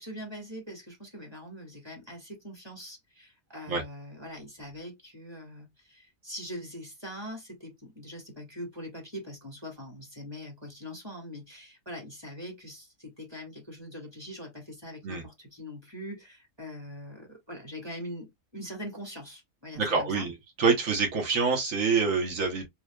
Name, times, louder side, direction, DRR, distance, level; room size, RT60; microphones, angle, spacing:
voice 1, 0.0-20.3, equal, 20° right, 1.8 m, -42 dB
voice 2, 19.8-20.3 20.6-22.7, right 5 dB, 70° right, 1.6 m, -26 dB
3.9 x 3.2 x 2.3 m
omnidirectional pair, 1.5 m